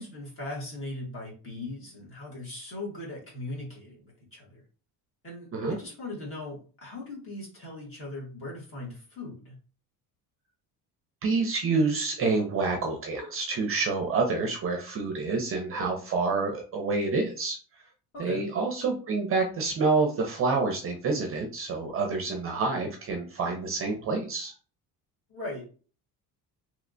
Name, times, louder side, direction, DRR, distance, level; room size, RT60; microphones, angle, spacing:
voice 1, 0.0-4.6 5.2-9.6 18.1-18.4 25.3-25.7, left 2 dB, 35° left, -3 dB, 1.5 m, -39 dB
voice 2, 11.2-17.9 18.2-24.5, right 3 dB, 35° right, 3 dB, 0.5 m, -28 dB
3.2 x 3.0 x 2.5 m, 0.38 s
cardioid pair, 165°, 39 cm